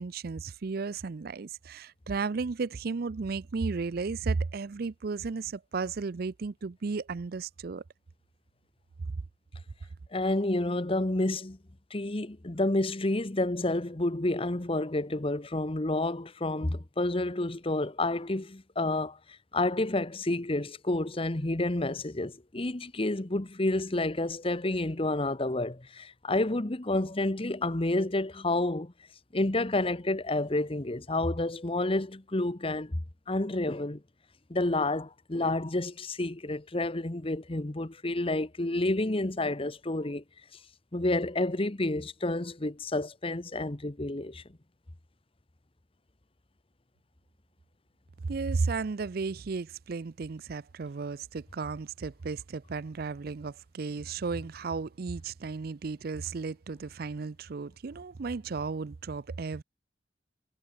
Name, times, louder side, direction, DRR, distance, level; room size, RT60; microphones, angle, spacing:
voice 1, 0.0-7.8 48.2-59.6, right 4 dB, 55° right, 0.5 m, -34 dB
voice 2, 10.1-11.6 11.9-19.2 19.5-28.9 29.3-33.0 33.3-34.0 34.5-40.2 40.9-44.4, left 2 dB, 30° left, 1.1 m, -29 dB
head